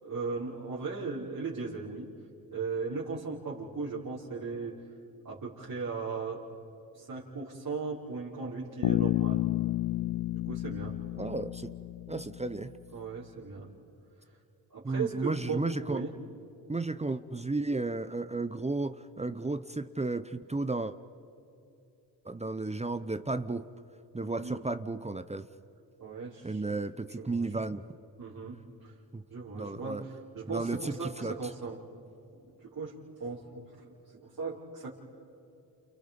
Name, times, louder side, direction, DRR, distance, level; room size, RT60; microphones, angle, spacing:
voice 1, 0.0-2.1 2.5-4.8 5.2-6.4 6.9-9.4 10.3-11.0 12.9-13.7 14.7-16.1 24.3-24.7 26.0-27.5 28.2-28.9 29.3-31.8 32.3-34.9, right 4 dB, 45° right, -8 dB, 5.1 m, -38 dB
Bass guitar, 8.8-12.7, left 15 dB, 55° left, 0.5 m, -31 dB
voice 2, 11.2-11.7 12.1-12.7 14.8-16.0 16.7-20.9 22.2-23.6 24.1-25.5 26.4-27.8 29.1-29.2 29.5-30.0 30.5-31.3, right 3 dB, 15° right, 11 dB, 0.9 m, -33 dB
29.5 x 29.5 x 5.3 m, 2.8 s
supercardioid pair, 65°, 46 cm